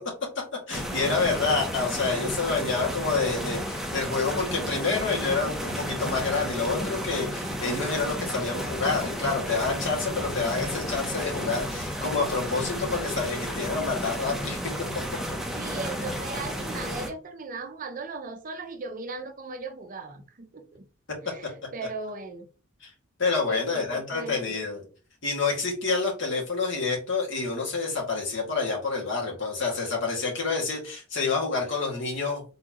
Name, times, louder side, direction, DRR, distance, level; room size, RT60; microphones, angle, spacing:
voice 1, 0.7-14.7 21.1-21.2 22.8-22.9 23.2-24.8 25.2-32.4, left 4 dB, 65° left, 1.9 m, -28 dB
sound 1, 0.7-17.1, equal, ahead, 0.7 m, -32 dB
voice 2, 15.6-20.9 21.2-22.5 23.5-24.6, right 3 dB, 40° right, 0.6 m, -38 dB
4.3 x 3.7 x 2.9 m
head